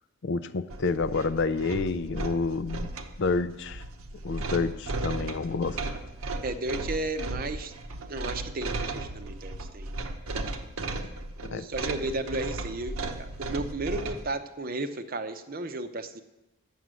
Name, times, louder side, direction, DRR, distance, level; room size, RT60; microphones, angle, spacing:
voice 1, 0.2-2.9 3.2-3.8 4.2-6.0 11.5-11.7, left 4 dB, 55° left, 12 dB, 0.4 m, -29 dB
sound 1, 0.7-14.3, right 2 dB, 75° right, 0.8 m, -35 dB
voice 2, 6.4-7.7 8.1-9.9 11.4-16.2, right 2 dB, 40° right, 9 dB, 0.6 m, -34 dB
9.2 x 7.1 x 7.5 m, 0.98 s
head